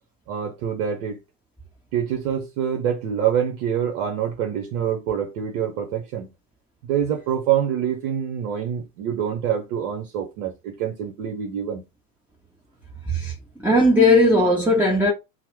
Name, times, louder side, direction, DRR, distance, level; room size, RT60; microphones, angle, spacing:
voice 1, 0.3-1.2 1.9-6.3 6.9-11.8, right 9 dB, 60° right, 0.7 m, -26 dB
voice 2, 13.6-15.1, left 1 dB, 5° right, 1.1 m, -17 dB
2.8 x 2.1 x 3.3 m
figure-of-eight pair, 75°, 43 cm